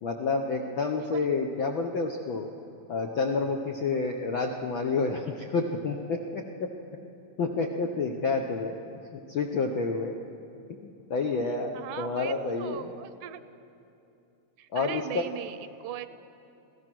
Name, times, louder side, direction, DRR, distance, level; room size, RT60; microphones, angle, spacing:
voice 1, 0.0-2.5 2.9-6.7 7.4-8.8 9.1-10.2 10.7-12.9 14.7-15.3, left 4 dB, 70° left, 2 dB, 1.2 m, -29 dB
voice 2, 11.7-13.4 14.6-16.2, right 11 dB, 90° right, 12 dB, 2.3 m, -39 dB
26.5 x 17.0 x 6.1 m, 2.7 s
omnidirectional pair, 3.4 m